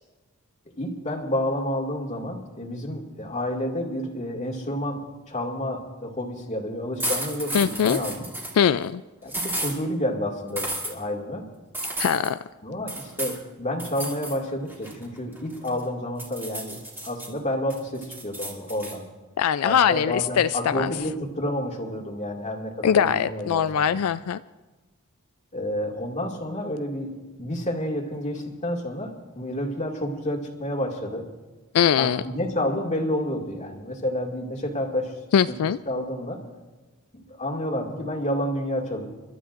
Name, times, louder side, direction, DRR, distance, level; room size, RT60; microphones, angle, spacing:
voice 1, 0.8-8.2 9.2-11.5 12.6-19.1 19.6-23.9 25.5-31.3 32.0-35.1 35.5-35.6 35.9-36.4 37.1-39.1, left 1 dB, 35° left, 1 dB, 2.1 m, -30 dB
sound 1, 7.0-8.6 9.3-9.7 10.6-10.9 11.7-12.3 12.9-13.4 13.8-14.4 14.7-15.8 16.2-17.3 17.7-18.9, right 1 dB, 10° right, 2.6 m, -32 dB
voice 2, 7.5-8.0 8.6-9.0 12.0-12.4 19.4-20.9 22.8-24.4 31.7-32.2 35.3-35.8, left 8 dB, 85° left, 13 dB, 0.3 m, -21 dB
30.0 x 13.0 x 2.5 m, 1.2 s
head